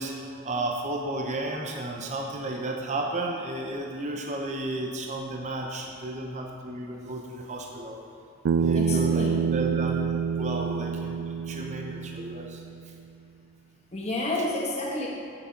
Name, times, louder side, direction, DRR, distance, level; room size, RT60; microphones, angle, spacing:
voice 1, 0.0-8.0 8.6-12.9, right 2 dB, 35° right, 1 dB, 0.7 m, -33 dB
Bass guitar, 8.5-12.8, right 6 dB, 75° right, 0.3 m, -27 dB
voice 2, 8.7-9.4 13.9-15.1, left 1 dB, 30° left, -3 dB, 1.1 m, -30 dB
9.7 x 6.9 x 5.1 m, 2.7 s
head